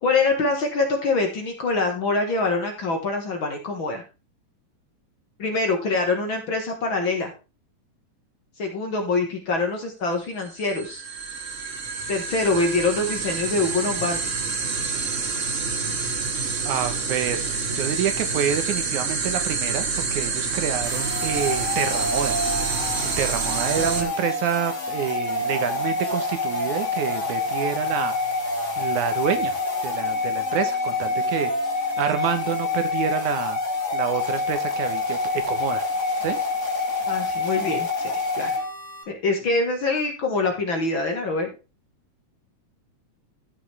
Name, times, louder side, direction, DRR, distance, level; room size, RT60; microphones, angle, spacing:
voice 1, 0.0-4.0 5.4-7.3 8.6-11.0 12.1-14.3 23.8-24.1 37.1-38.1 38.4-38.5 39.1-41.5, left 3 dB, 45° left, 3 dB, 1.9 m, -24 dB
sound 1, 10.4-24.0, right 4 dB, 50° right, 0.8 m, -28 dB
voice 2, 16.6-22.4 23.0-28.1 28.8-29.5 29.8-31.5 32.0-33.6 33.9-35.8 36.2-36.4, right 9 dB, 75° right, 9 dB, 2.4 m, -27 dB
sound 2, 20.8-39.0, left 3 dB, 25° left, 2.0 m, -27 dB
14.0 x 6.1 x 3.4 m, 0.30 s
omnidirectional pair, 3.6 m